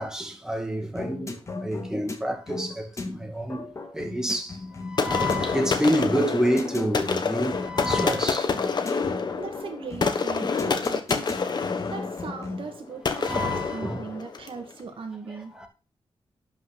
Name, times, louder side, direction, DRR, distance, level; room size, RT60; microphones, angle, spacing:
voice 1, 0.0-1.3 1.6-3.7 3.9-4.5 4.9-8.5 10.4-10.5 13.2-14.0, equal, 5° right, 2.2 m, -27 dB
sound 1, 0.9-12.8, left 3 dB, 30° left, 1.7 m, -37 dB
sound 2, 5.0-14.6, left 5 dB, 50° left, 1.3 m, -28 dB
voice 2, 9.4-11.3 11.9-15.5, right 5 dB, 65° right, 2.2 m, -38 dB
11.5 x 5.8 x 4.3 m
wide cardioid pair, 115°, 10 cm